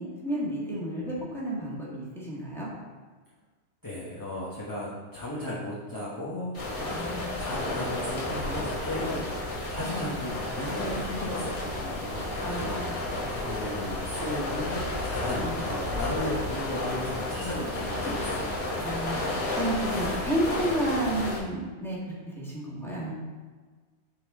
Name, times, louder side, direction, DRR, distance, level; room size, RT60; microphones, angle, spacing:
voice 1, 0.0-2.7 6.9-7.5 9.8-10.1 12.4-13.0 15.4-15.6 18.8-19.2 19.6-22.0 22.3-23.1, right 1 dB, ahead, -6 dB, 1.6 m, -31 dB
voice 2, 3.8-19.1, left 1 dB, 20° left, -8 dB, 1.0 m, -36 dB
sound 1, 6.5-21.4, left 1 dB, 75° left, 2.0 m, -32 dB
7.9 x 4.2 x 3.7 m, 1.4 s
omnidirectional pair, 1.2 m